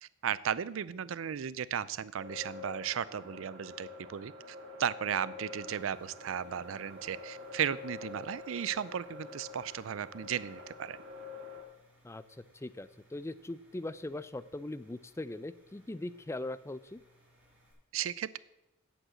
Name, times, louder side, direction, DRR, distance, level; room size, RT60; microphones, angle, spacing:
voice 1, 0.0-11.0 17.9-18.4, right 8 dB, 80° right, 18 dB, 0.4 m, -35 dB
sound 1, 2.2-11.6, left 3 dB, 60° right, 2.9 m, -47 dB
sound 2, 5.7-17.7, equal, 5° right, 4.9 m, -66 dB
voice 2, 12.0-17.0, left 2 dB, 15° left, 15 dB, 0.4 m, -40 dB
8.8 x 7.9 x 7.6 m, 0.87 s
head